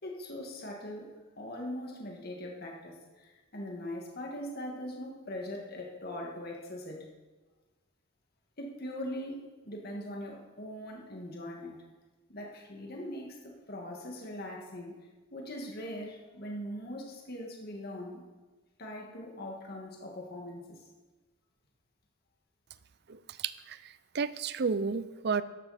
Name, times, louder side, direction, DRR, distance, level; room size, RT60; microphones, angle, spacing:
voice 1, 0.0-7.1 8.6-11.8 12.3-15.0 15.3-18.2 18.8-20.8, left 1 dB, 50° left, 0 dB, 2.0 m, -41 dB
voice 2, 23.1-25.4, right 5 dB, 55° right, 15 dB, 0.5 m, -32 dB
13.5 x 11.5 x 4.3 m, 1.3 s
head